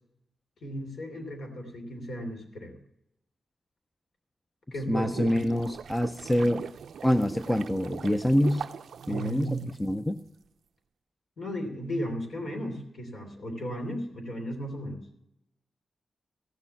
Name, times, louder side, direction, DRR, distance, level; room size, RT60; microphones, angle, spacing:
voice 1, 0.6-2.8 4.7-5.4 9.1-9.7 11.4-15.0, equal, 60° left, 4 dB, 3.2 m, -35 dB
sound 1, 4.8-10.2, right 7 dB, 80° right, 0.5 m, -41 dB
voice 2, 4.9-6.6 7.0-8.6 9.1-10.2, left 1 dB, 10° left, 9 dB, 0.5 m, -26 dB
15.5 x 6.6 x 7.0 m, 0.82 s
wide cardioid pair, 140°, 0 cm